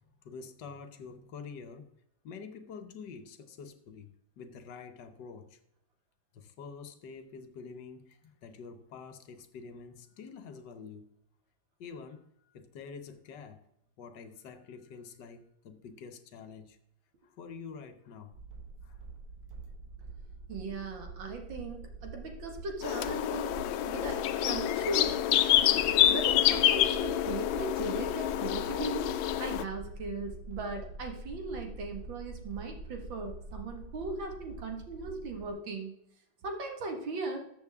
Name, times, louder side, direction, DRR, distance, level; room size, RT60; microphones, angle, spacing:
voice 1, 0.2-1.9 2.2-4.1 4.4-5.5 6.3-11.1 11.8-12.3 12.5-13.6 14.0-16.8 17.4-18.3 18.8-19.0, left 5 dB, 65° left, 1.6 m, -47 dB
sound 1, 18.3-35.5, right 3 dB, 55° right, 1.5 m, -45 dB
voice 2, 20.5-23.6 23.9-25.2 26.1-29.1 29.4-35.9 36.4-37.4, right 3 dB, 80° right, 2.5 m, -38 dB
sound 2, 22.8-29.6, left 12 dB, 90° left, 1.4 m, -27 dB
13.5 x 7.2 x 3.6 m
omnidirectional pair, 2.1 m